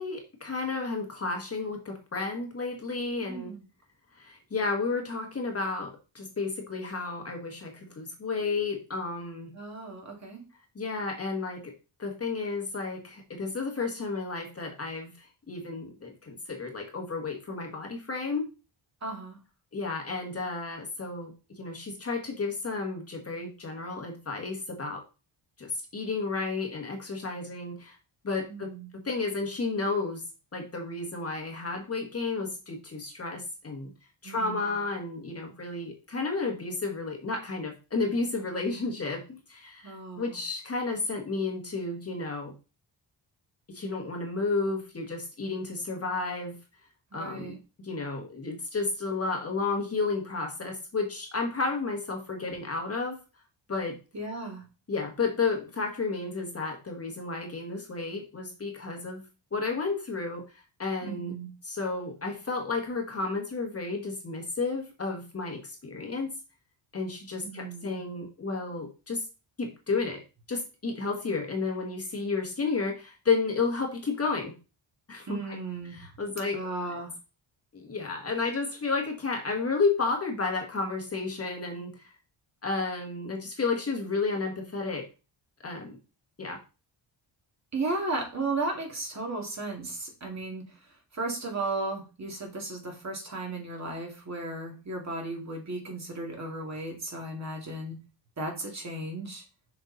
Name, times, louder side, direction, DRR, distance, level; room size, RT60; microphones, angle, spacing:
voice 1, 0.0-3.5 4.2-9.5 10.7-11.7 12.0-18.5 19.7-21.3 21.6-25.0 25.6-27.9 28.2-30.2 30.5-33.9 34.2-42.5 43.7-46.6 47.1-47.6 47.8-53.2 53.7-54.0 54.9-59.2 59.5-60.4 60.8-61.3 61.6-66.3 66.9-69.3 69.6-70.2 70.5-74.5 75.1-75.6 75.9-76.6 77.7-81.9 82.6-85.1 85.6-86.0 86.4-86.6, left 4 dB, 30° left, 2 dB, 1.6 m, -32 dB
voice 2, 3.2-3.6 9.5-10.4 19.0-19.4 28.5-28.9 34.2-34.7 39.8-40.4 47.1-47.6 54.1-54.6 61.0-61.5 67.4-68.0 75.3-76.0 76.5-77.1 87.7-90.6 91.1-98.0 98.4-99.4, right 2 dB, 35° right, 1 dB, 2.6 m, -35 dB
6.7 x 5.9 x 4.1 m, 0.31 s
wide cardioid pair, 155°, 46 cm